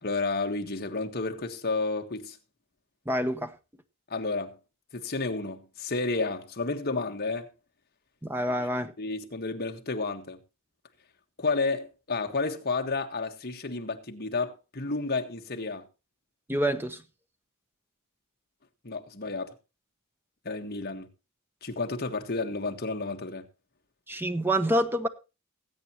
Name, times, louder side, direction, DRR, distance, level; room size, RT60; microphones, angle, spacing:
voice 1, 0.0-2.4 4.1-4.6 4.9-7.5 8.6-8.7 9.0-10.4 11.4-15.9 18.8-19.5 20.4-21.1 21.6-23.5, left 3 dB, 45° left, 1.5 m, -31 dB
voice 2, 3.1-3.5 8.2-8.9 16.5-17.0 24.1-25.1, right 1 dB, 10° right, 0.9 m, -27 dB
20.0 x 8.5 x 3.0 m
head